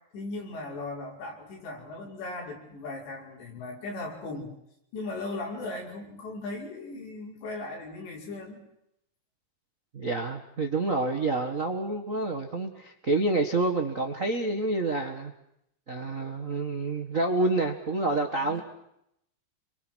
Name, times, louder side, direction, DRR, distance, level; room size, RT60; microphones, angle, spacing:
voice 1, 0.1-4.5 4.9-8.6 18.1-18.6, left 2 dB, 85° left, 0 dB, 7.8 m, -38 dB
voice 2, 9.9-15.3 15.9-18.6, right 2 dB, 60° right, 4 dB, 0.8 m, -28 dB
28.0 x 24.0 x 6.4 m, 0.78 s
omnidirectional pair, 4.9 m